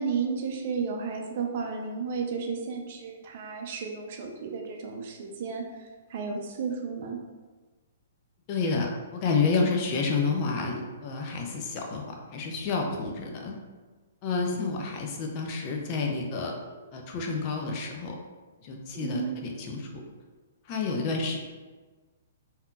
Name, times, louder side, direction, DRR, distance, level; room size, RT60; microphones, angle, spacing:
voice 1, 0.0-7.2 16.8-16.9 18.9-19.4, right 5 dB, 50° right, 2 dB, 0.5 m, -33 dB
voice 2, 8.5-13.6 14.2-16.5 16.9-18.2 18.6-19.9 20.7-21.4, left 4 dB, 40° left, 1 dB, 0.6 m, -29 dB
3.5 x 2.8 x 2.4 m, 1.3 s
figure-of-eight pair, 120°, 0 cm